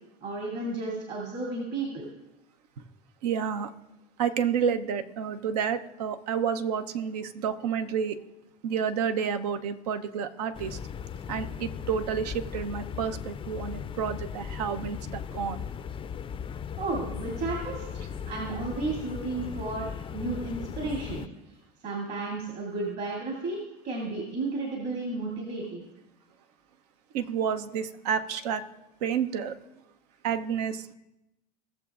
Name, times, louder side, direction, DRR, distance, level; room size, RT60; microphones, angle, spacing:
voice 1, 0.2-2.1 16.8-19.9 20.1-21.3 21.8-23.6 23.8-25.8, right 3 dB, 50° right, 2.7 m, -33 dB
voice 2, 3.2-3.7 4.2-8.2 8.6-10.8 11.3-15.6 27.1-28.6 29.0-29.5 30.2-30.9, right 7 dB, 75° right, 0.8 m, -30 dB
sound 1, 10.5-21.3, left 7 dB, 25° left, 0.4 m, -37 dB
17.5 x 7.0 x 2.5 m
hypercardioid pair, 80°, 20 cm